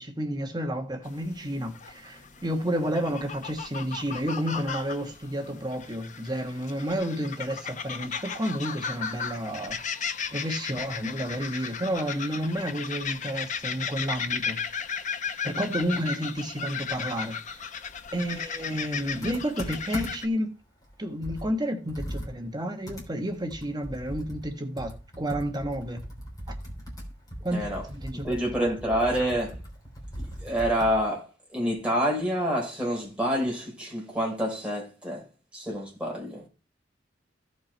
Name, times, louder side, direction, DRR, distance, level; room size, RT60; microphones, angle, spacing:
voice 1, 0.0-9.8 10.1-14.6 15.4-17.6 18.1-20.6 21.0-26.0 27.4-28.7, equal, 20° right, 1.2 m, -31 dB
sound 1, 1.0-20.3, left 6 dB, 40° left, 0.8 m, -35 dB
Computer keyboard, 19.2-20.4 20.8-20.9 21.2-31.1, equal, 20° left, 3.4 m, -39 dB
voice 2, 27.5-27.8 28.2-29.5 30.4-31.2 31.5-35.2 35.5-36.4, equal, 5° right, 4.1 m, -27 dB
15.0 x 5.4 x 4.4 m
head